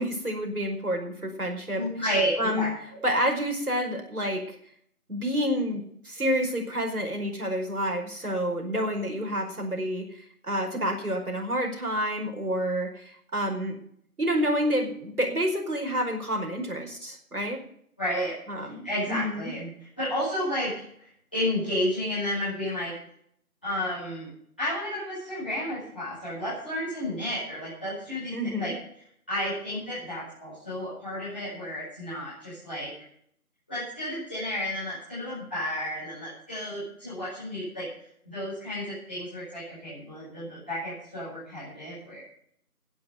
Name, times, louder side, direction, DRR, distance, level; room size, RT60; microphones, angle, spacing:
voice 1, 0.0-1.8 2.4-2.7 3.0-4.6 5.1-10.1 10.4-13.7 14.2-17.6 18.5-18.8 19.1-19.5 28.3-28.7, equal, 70° right, 2 dB, 5.0 m, -28 dB
voice 2, 1.7-3.0 18.0-23.0 23.6-24.3 24.6-28.7 29.3-32.9 33.7-42.2, equal, 5° left, -16 dB, 5.0 m, -32 dB
11.5 x 10.0 x 7.9 m, 0.66 s
figure-of-eight pair, 180°, 45 cm